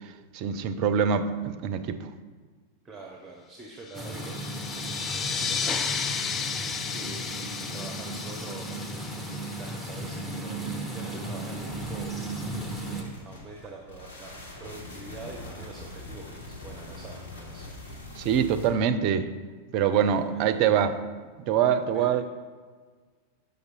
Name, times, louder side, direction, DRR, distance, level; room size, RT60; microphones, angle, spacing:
voice 1, 0.3-2.0 18.2-19.3 19.7-21.0 21.5-22.2, right 8 dB, 45° right, 11 dB, 0.4 m, -24 dB
voice 2, 2.8-14.3 14.6-17.7 19.9-20.4 21.9-22.1, right 3 dB, 15° right, 0 dB, 0.8 m, -46 dB
sound 1, 3.9-10.1, left 6 dB, 25° left, 0.4 m, -33 dB
sound 2, 3.9-13.0, right 1 dB, 5° left, 1.0 m, -35 dB
sound 3, 11.5-18.7, left 2 dB, 65° left, 1.4 m, -43 dB
6.5 x 5.2 x 4.3 m, 1.5 s
figure-of-eight pair, 90°, 0 cm